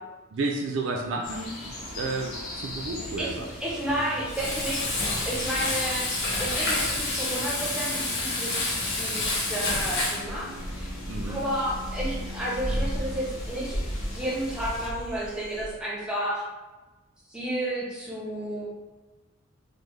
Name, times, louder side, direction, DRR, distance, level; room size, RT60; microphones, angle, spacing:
voice 1, 0.3-3.5 11.1-11.4, right 3 dB, 60° right, 0 dB, 0.3 m, -32 dB
sound 1, 1.2-14.9, left 1 dB, 85° left, 0.7 m, -40 dB
voice 2, 3.0-5.0 5.2-8.6 8.9-10.9 11.2-13.8 14.1-16.4 17.3-18.7, right 1 dB, 5° right, -5 dB, 0.6 m, -32 dB
Frying (food), 4.3-10.2, left 2 dB, 55° left, 0.8 m, -28 dB
sound 2, 10.2-15.7, equal, 35° left, 0.9 m, -34 dB
3.5 x 2.0 x 3.1 m, 1.2 s
head